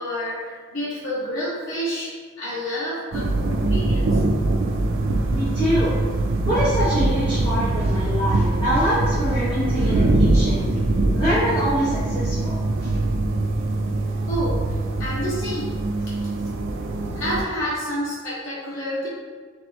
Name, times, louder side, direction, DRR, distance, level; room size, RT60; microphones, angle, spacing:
voice 1, 0.0-2.1 2.4-4.2 14.3-15.8 17.1-19.1, equal, 75° left, -9 dB, 1.3 m, -29 dB
sound 1, 3.1-17.4, right 2 dB, 80° right, 0.4 m, -23 dB
voice 2, 5.3-6.0 6.5-10.7 11.1-12.9, equal, 25° left, -12 dB, 1.1 m, -25 dB
3.9 x 3.3 x 3.4 m, 1.5 s
head